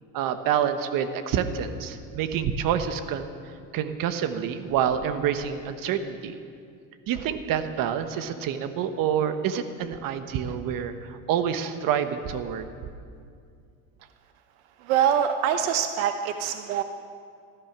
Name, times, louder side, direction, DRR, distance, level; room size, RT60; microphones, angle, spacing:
voice 1, 0.1-3.3 3.7-6.4 7.1-12.7, right 8 dB, 55° right, 9 dB, 1.3 m, -27 dB
voice 2, 14.8-16.8, right 9 dB, 80° right, 8 dB, 0.9 m, -24 dB
15.5 x 13.5 x 6.1 m, 2.3 s
supercardioid pair, 115°, 40 cm